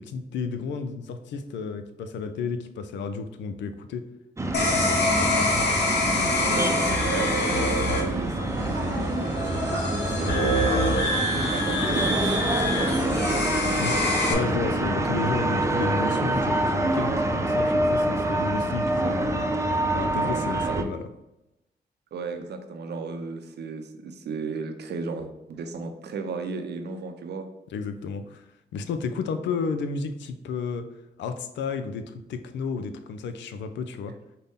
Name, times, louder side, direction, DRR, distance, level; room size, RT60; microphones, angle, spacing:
voice 1, 0.0-4.0 13.8-14.0 14.3-19.5 19.9-21.0 27.7-28.5 28.7-30.9 31.2-34.1, left 5 dB, 85° left, 9 dB, 0.4 m, -32 dB
sound 1, 4.4-20.8, right 1 dB, 15° right, 0.6 m, -26 dB
sound 2, 4.5-14.3, left 2 dB, 70° left, 1.0 m, -26 dB
voice 2, 6.1-10.6 11.2-13.5 20.2-20.9 22.1-27.5, right 4 dB, 70° right, 6 dB, 0.6 m, -34 dB
Human voice, 7.7-15.1 15.7-17.1, right 2 dB, 85° right, 1.0 m, -37 dB
5.5 x 2.2 x 3.5 m, 0.90 s
supercardioid pair, 45°, 18 cm